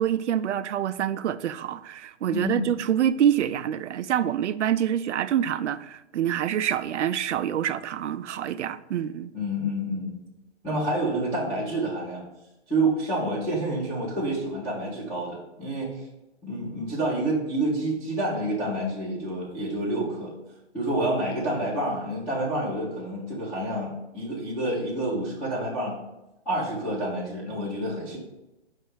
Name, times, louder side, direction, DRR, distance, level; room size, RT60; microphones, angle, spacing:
voice 1, 0.0-9.3, right 10 dB, 85° right, 0.5 m, -26 dB
voice 2, 2.3-2.7 9.3-10.1 10.6-12.2 12.7-15.9 16.4-20.3 20.7-26.0 26.5-28.2, right 1 dB, 5° left, 0.5 m, -28 dB
5.4 x 3.2 x 5.6 m
hypercardioid pair, 155°, 34 cm